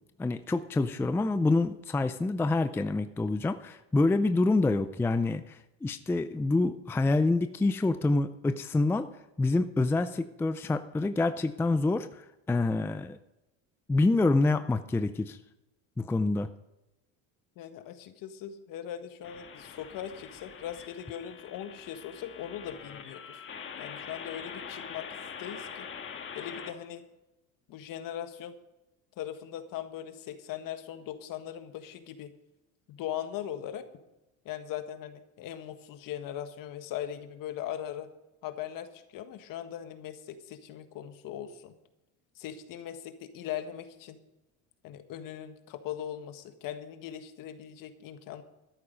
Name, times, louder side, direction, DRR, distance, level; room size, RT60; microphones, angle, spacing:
voice 1, 0.2-9.1 9.4-13.2 13.9-15.4 16.0-16.5, left 2 dB, 5° left, 11 dB, 0.4 m, -27 dB
voice 2, 17.6-23.4 23.8-25.1 25.4-25.9 26.3-27.0 27.7-28.5 29.2-32.3 32.9-33.9 34.4-38.1 38.4-41.7 42.4-44.2 44.8-48.4, left 10 dB, 55° left, 9 dB, 1.6 m, -40 dB
sound 1, 19.2-26.7, left 6 dB, 30° left, 1.7 m, -44 dB
13.0 x 11.5 x 5.2 m, 0.96 s
supercardioid pair, 115°, 38 cm